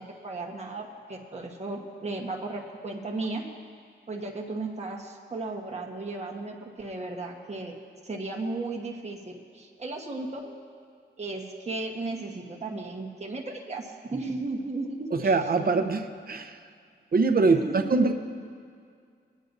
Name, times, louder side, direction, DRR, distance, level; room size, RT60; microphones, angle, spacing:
voice 1, 0.0-3.5 4.1-7.7 8.0-10.5 11.2-15.8 17.4-18.1, right 2 dB, 35° right, 0 dB, 1.3 m, -35 dB
voice 2, 15.1-16.5 17.1-18.1, right 3 dB, 50° right, 8 dB, 0.8 m, -23 dB
20.5 x 9.3 x 2.7 m, 2.2 s
cardioid pair, 70°, 19 cm